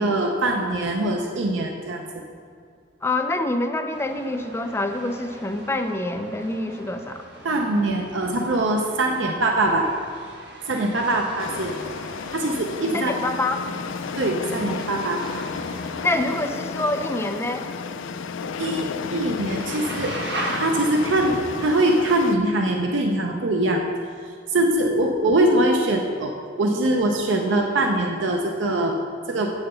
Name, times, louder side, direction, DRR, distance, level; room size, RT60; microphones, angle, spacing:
voice 1, 0.0-2.2 7.4-9.9 10.6-11.7 12.3-13.1 14.1-15.2 18.6-20.2 20.5-23.8 24.2-29.0 29.3-29.5, right 1 dB, 75° right, 2 dB, 0.6 m, -23 dB
voice 2, 3.0-7.2 12.9-13.6 16.0-17.7, left 2 dB, 15° left, 5 dB, 0.4 m, -26 dB
sound 1, 3.9-21.4, right 1 dB, 60° right, 1.4 m, -39 dB
sound 2, 11.4-22.4, left 5 dB, 85° left, 0.4 m, -33 dB
7.7 x 5.7 x 6.7 m, 2.2 s
head